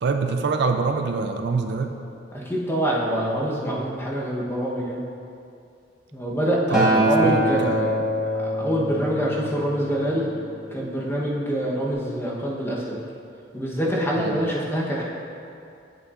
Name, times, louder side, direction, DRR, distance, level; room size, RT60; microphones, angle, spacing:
voice 1, 0.0-1.9 6.7-7.8 14.2-14.4, right 4 dB, 60° right, 5 dB, 0.4 m, -25 dB
voice 2, 2.3-5.0 6.1-8.1 8.4-10.3 10.7-13.0 13.5-15.0, equal, 10° left, -4 dB, 0.9 m, -25 dB
Acoustic guitar, 6.7-11.0 11.9-12.0, right 1 dB, 5° right, 1.3 m, -25 dB
8.5 x 6.8 x 2.4 m, 2.6 s
head